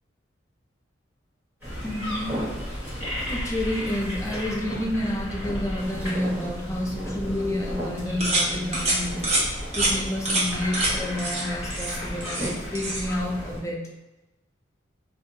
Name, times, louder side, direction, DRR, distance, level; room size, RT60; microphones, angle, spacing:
sound 1, 1.6-13.6, equal, 10° right, 1.2 m, -33 dB
voice 1, 1.8-2.5 3.3-9.4 9.7-13.9, left 1 dB, 15° left, -1 dB, 0.4 m, -29 dB
sound 2, 8.2-8.5 8.7-9.0 9.2-9.4 9.7-9.9 10.3-10.4 10.7-10.9 11.2-11.4 11.7-12.5 12.8-13.0, right 2 dB, 35° right, 0.7 m, -25 dB
2.7 x 2.4 x 2.6 m, 1.0 s
head